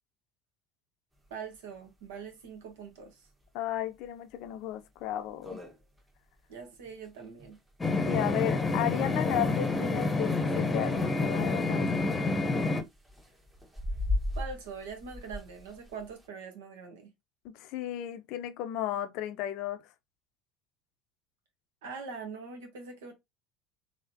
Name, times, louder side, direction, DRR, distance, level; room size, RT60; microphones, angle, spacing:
sound 1, 1.2-1.3 1.6-1.7 2.0-2.1 2.7-2.9 3.4-3.5 4.0-4.1 4.5-4.6 5.0-5.1 5.2-16.3, left 2 dB, 15° right, 1.3 m, -39 dB
voice 1, 1.3-3.3 6.5-7.6 14.4-17.1 21.8-23.1, right 5 dB, 70° right, 1.2 m, -43 dB
voice 2, 3.5-5.6 8.0-12.1 17.4-19.8, left 12 dB, 60° left, 0.5 m, -34 dB
sound 2, 7.8-12.8, left 3 dB, 20° left, 0.9 m, -28 dB
3.7 x 3.1 x 2.8 m
figure-of-eight pair, 65°, 0 cm